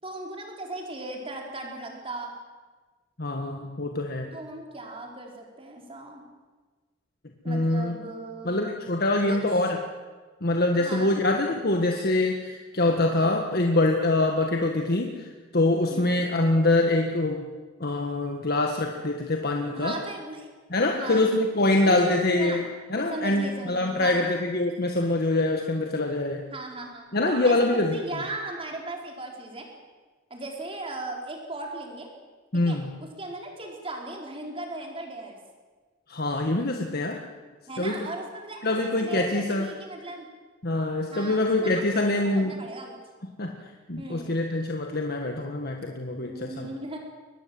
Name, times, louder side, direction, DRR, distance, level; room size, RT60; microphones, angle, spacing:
voice 1, 0.0-2.3 4.3-6.2 7.4-8.8 9.3-9.4 10.8-11.1 15.9-16.2 19.7-20.5 20.9-21.3 21.9-22.6 23.1-24.3 26.5-29.7 30.3-32.1 32.5-35.4 37.7-40.3 41.1-43.0 44.0-44.4 46.2-47.0, right 2 dB, 30° right, 1 dB, 4.4 m, -37 dB
voice 2, 3.2-4.3 7.4-7.9 8.4-9.8 10.4-17.5 17.8-20.0 20.7-22.6 22.9-26.4 27.1-28.0 32.5-32.9 36.1-37.2 37.8-38.0 38.6-39.7 40.6-42.6 43.4-43.5 43.9-46.7, left 2 dB, 50° left, 3 dB, 1.7 m, -24 dB
23.5 x 19.5 x 7.8 m, 1.4 s
head